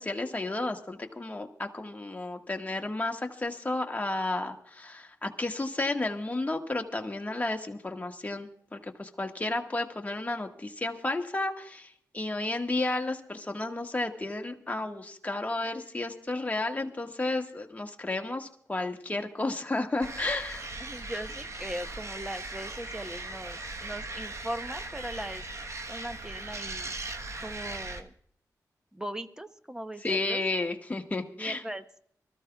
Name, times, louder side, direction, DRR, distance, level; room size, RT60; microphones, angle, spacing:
voice 1, 0.0-20.7 30.0-31.6, left 2 dB, 25° left, 3 dB, 1.6 m, -32 dB
sound 1, 20.0-28.0, right 2 dB, 45° right, 1.2 m, -39 dB
voice 2, 20.8-25.4 25.9-26.9 27.4-28.1 28.9-30.4 31.4-31.8, right 1 dB, 10° right, 10 dB, 0.9 m, -39 dB
24.5 x 14.5 x 2.4 m, 0.64 s
cardioid pair, 75°, 7 cm